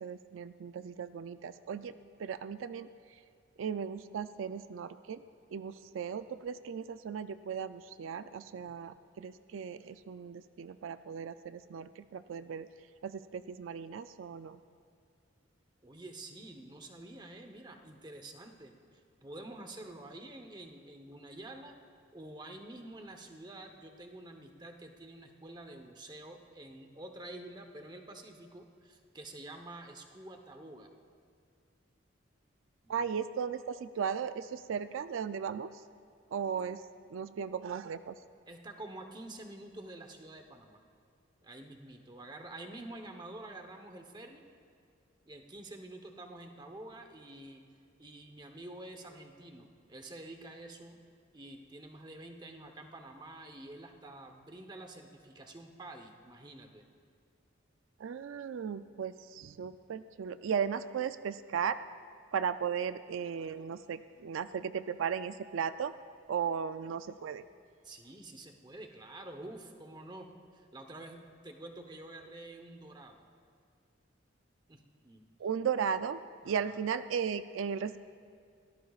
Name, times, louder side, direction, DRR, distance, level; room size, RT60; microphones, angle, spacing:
voice 1, 0.0-1.9 2.2-3.2 3.6-5.2 5.5-12.7 13.0-14.6 32.9-35.8 36.3-38.1 58.0-61.8 62.3-65.9 66.3-67.4 75.4-78.0, right 7 dB, 85° right, 12 dB, 0.4 m, -36 dB
voice 2, 15.8-21.8 22.1-30.9 32.8-33.1 38.5-40.8 41.4-44.4 45.3-47.6 48.0-51.0 51.3-56.8 67.8-73.3 74.7-75.2 76.4-76.7, right 1 dB, 20° right, 5 dB, 0.9 m, -48 dB
23.5 x 17.5 x 2.4 m, 2.2 s
head